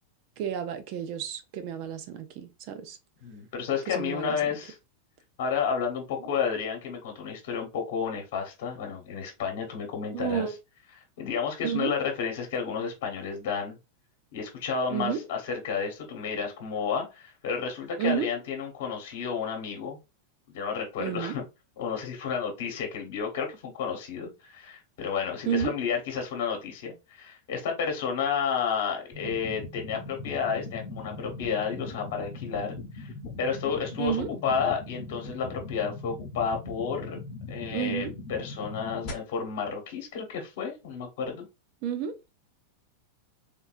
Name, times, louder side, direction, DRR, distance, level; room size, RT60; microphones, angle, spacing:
voice 1, 0.4-3.0 3.9-4.4 10.1-10.5 11.6-11.9 14.9-15.2 18.0-18.3 21.0-21.4 25.5-25.8 34.0-34.3 37.7-38.1 41.8-42.2, right 8 dB, 35° right, 0.5 m, -31 dB
voice 2, 3.2-4.7 5.4-10.5 11.2-13.8 14.3-20.0 20.5-21.4 21.8-33.1 33.4-37.2 37.5-41.4, left 6 dB, 50° left, 1.1 m, -31 dB
sound 1, 29.1-39.1, left 3 dB, 30° left, 1.0 m, -40 dB
3.6 x 2.6 x 2.5 m
supercardioid pair, 180°, 0 cm